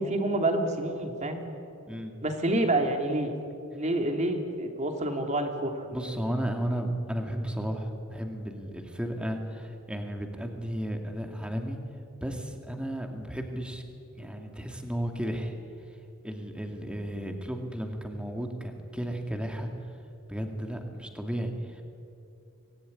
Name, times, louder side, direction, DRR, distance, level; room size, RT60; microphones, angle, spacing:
voice 1, 0.0-1.4 2.2-3.3 3.7-5.9, right 1 dB, 30° right, 4 dB, 2.9 m, -28 dB
voice 2, 5.9-11.8 12.2-13.8 14.1-15.5 16.2-19.7 20.3-21.8, equal, 5° right, 4 dB, 2.4 m, -34 dB
25.5 x 20.0 x 10.0 m, 2.6 s
head